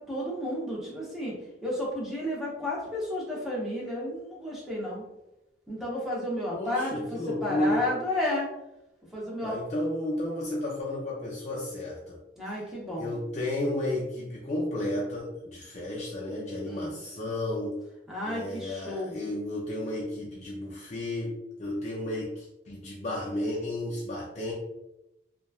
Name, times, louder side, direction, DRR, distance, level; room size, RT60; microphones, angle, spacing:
voice 1, 0.0-5.0 5.7-8.5 9.1-9.5 12.4-13.1 16.7-16.9 18.1-19.2, left 1 dB, ahead, -6 dB, 0.7 m, -32 dB
voice 2, 6.5-7.8 9.4-12.2 13.0-17.8 18.2-21.3 21.6-24.5, left 1 dB, 40° left, -4 dB, 0.4 m, -32 dB
2.9 x 2.2 x 2.3 m, 0.91 s
head